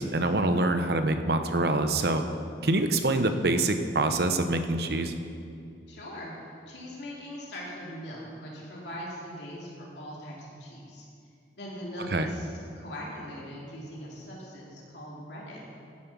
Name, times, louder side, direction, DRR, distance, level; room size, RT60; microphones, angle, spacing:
voice 1, 0.0-2.2 2.6-5.1 12.1-12.3, right 2 dB, 60° right, 8 dB, 0.8 m, -25 dB
voice 2, 5.9-6.3 6.7-11.0 11.6-12.5 12.8-15.6, equal, 75° left, -4 dB, 2.7 m, -40 dB
15.0 x 7.6 x 6.0 m, 2.4 s
head